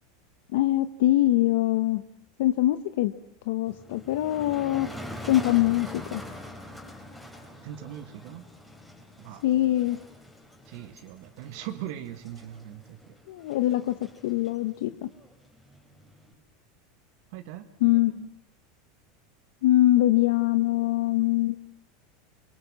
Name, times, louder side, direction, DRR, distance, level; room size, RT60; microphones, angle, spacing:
voice 1, 0.5-2.0 2.4-3.1 3.5-4.9 5.3-6.2 9.4-10.0 13.3-14.0 14.2-15.1 17.8-18.1 19.6-21.6, left 15 dB, 75° left, 10 dB, 1.0 m, -23 dB
Motor vehicle (road), 3.7-16.3, equal, 5° left, 4.0 m, -44 dB
voice 2, 7.6-8.5 9.2-9.4 10.7-13.1 17.3-18.3, right 12 dB, 60° right, 7 dB, 1.8 m, -40 dB
26.5 x 23.0 x 7.5 m, 0.75 s
supercardioid pair, 150°, 0 cm